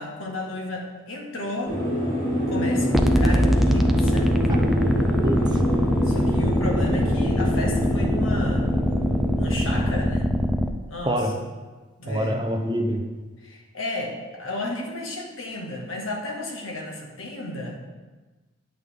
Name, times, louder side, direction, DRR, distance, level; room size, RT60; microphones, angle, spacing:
voice 1, 0.0-1.8 2.5-4.3 6.0-8.7 9.4-10.3 10.9-11.2 12.0-12.4 13.4-17.8, left 1 dB, 80° left, 0 dB, 1.5 m, -33 dB
sound 1, 1.6-10.0, equal, 40° left, 2.9 m, -26 dB
sound 2, 2.9-10.7, equal, ahead, 0.3 m, -22 dB
voice 2, 5.2-5.6 11.1-11.3 12.1-13.0, equal, 20° right, 3 dB, 0.7 m, -25 dB
9.3 x 8.1 x 3.5 m, 1.3 s
head